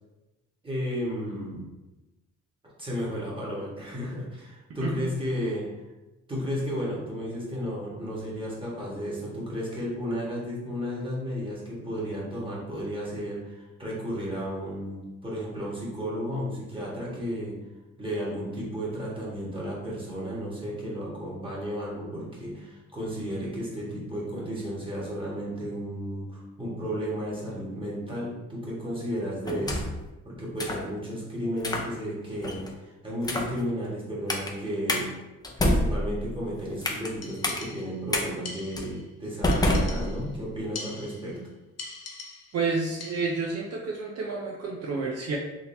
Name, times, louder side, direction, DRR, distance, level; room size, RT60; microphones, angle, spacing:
voice 1, 0.6-1.7 2.8-5.7 6.3-17.5 18.0-29.8 30.2-35.1 35.6-41.4, equal, 15° right, -6 dB, 1.5 m, -33 dB
sound 1, 29.4-30.0 30.6-30.9 31.6-31.9 32.4-32.7 33.2-33.6 34.3-34.5 34.9-35.0 35.4-37.1 37.4-37.6 38.1-38.2 38.8-38.9 39.4-40.5, left 1 dB, 15° left, 0.5 m, -27 dB
sound 2, 37.2-38.1 38.4-39.1 39.5-40.3 40.7-41.4 41.8-42.7 43.0-43.5, left 4 dB, 55° left, 0.7 m, -43 dB
voice 2, 42.5-45.4, right 4 dB, 55° right, -2 dB, 0.6 m, -30 dB
3.9 x 2.8 x 2.7 m, 1.0 s
cardioid pair, 90°, 30 cm